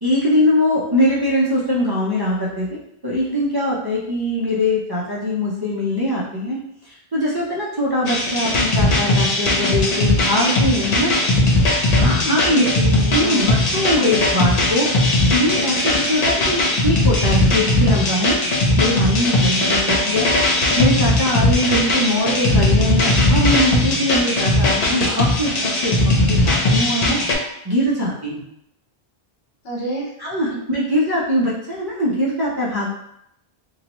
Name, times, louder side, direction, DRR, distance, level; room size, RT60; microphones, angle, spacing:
voice 1, 0.0-6.6 6.8-11.2 11.9-12.7 13.1-14.9 15.3-18.4 18.8-20.3 20.8-25.5 25.8-27.3 27.6-28.4 30.2-32.9, left 1 dB, 30° right, -8 dB, 0.6 m, -21 dB
sound 1, 8.1-27.3, left 2 dB, 50° left, 0.6 m, -18 dB
voice 2, 12.2-13.5 13.9-14.0 29.6-30.1 30.5-30.6, right 1 dB, 75° left, -3 dB, 1.1 m, -29 dB
3.7 x 2.1 x 2.9 m, 0.77 s
omnidirectional pair, 1.0 m